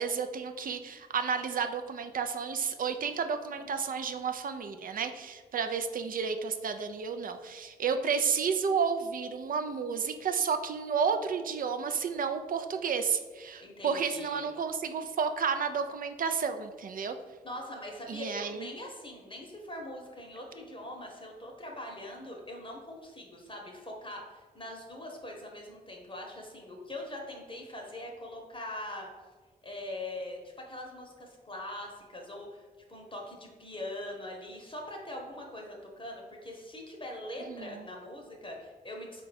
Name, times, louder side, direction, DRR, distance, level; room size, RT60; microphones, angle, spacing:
voice 1, 0.0-17.2 18.1-18.7 37.5-37.9, right 6 dB, 50° right, 8 dB, 0.4 m, -31 dB
voice 2, 13.6-14.5 17.4-29.1 29.6-39.3, left 1 dB, 30° left, 0 dB, 0.8 m, -42 dB
3.7 x 2.3 x 4.0 m, 1.4 s
supercardioid pair, 45°, 18 cm